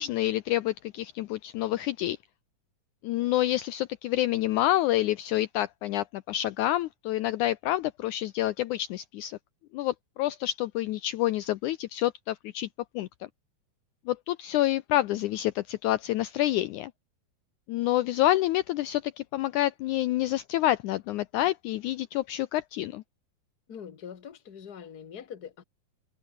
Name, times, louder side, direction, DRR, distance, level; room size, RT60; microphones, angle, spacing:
voice 1, 0.0-2.2 3.0-9.4 9.7-12.7 12.9-13.3 14.1-16.9 17.7-23.0, left 14 dB, 80° left, 1.9 m, -28 dB
voice 2, 23.7-25.6, left 8 dB, 35° left, 1.9 m, -43 dB
omnidirectional pair, 4.1 m